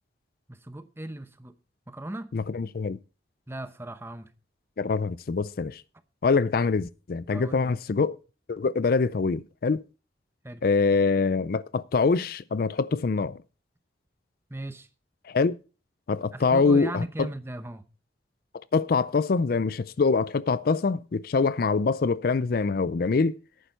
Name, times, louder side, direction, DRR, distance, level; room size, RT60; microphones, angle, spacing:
voice 1, 0.5-1.5 1.9-2.3 3.5-4.3 7.3-7.7 10.4-10.6 14.5-14.9 16.3-17.9, right 1 dB, 15° right, 0.8 m, -37 dB
voice 2, 2.3-3.0 4.8-5.8 6.2-8.2 8.5-9.8 10.6-13.4 15.3-15.6 16.1-17.3 18.7-23.4, left 4 dB, 55° left, 0.4 m, -24 dB
11.0 x 9.4 x 4.4 m
head